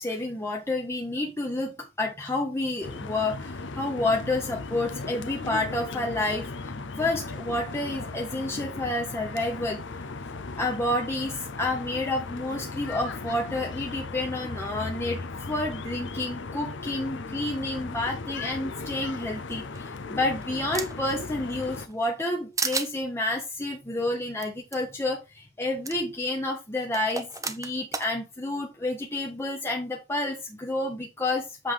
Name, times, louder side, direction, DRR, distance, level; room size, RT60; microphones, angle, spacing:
voice 1, 0.0-10.1 10.6-31.7, left 2 dB, 15° left, 1.0 m, -30 dB
sound 1, 2.8-21.9, left 3 dB, 70° left, 0.7 m, -37 dB
sound 2, 19.7-21.1 21.6-22.3 22.6-22.9 24.4-24.5 24.7-24.8 25.8-26.0 26.9-28.1, right 4 dB, 15° right, 0.8 m, -32 dB
7.6 x 3.7 x 4.8 m
head